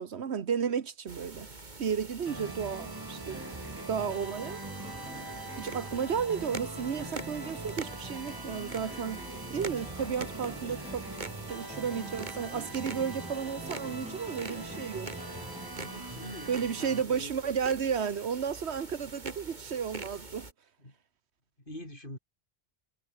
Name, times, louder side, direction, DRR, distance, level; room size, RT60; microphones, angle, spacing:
voice 1, 0.0-1.5 1.8-3.4 3.9-4.6 5.6-9.2 9.5-11.1 11.5-15.1 16.5-20.5, right 7 dB, 85° right, 1.4 m, -33 dB
sound 1, 1.1-20.5, right 3 dB, 45° right, 2.4 m, -44 dB
sound 2, 2.3-17.0, right 2 dB, 20° right, 1.4 m, -43 dB
sound 3, 3.3-16.9, equal, 5° right, 5.6 m, -48 dB
voice 2, 9.9-10.3 15.7-16.5 16.8-17.3 20.8-20.9 21.7-22.2, left 1 dB, 55° left, 8.4 m, -45 dB
omnidirectional pair, 1.1 m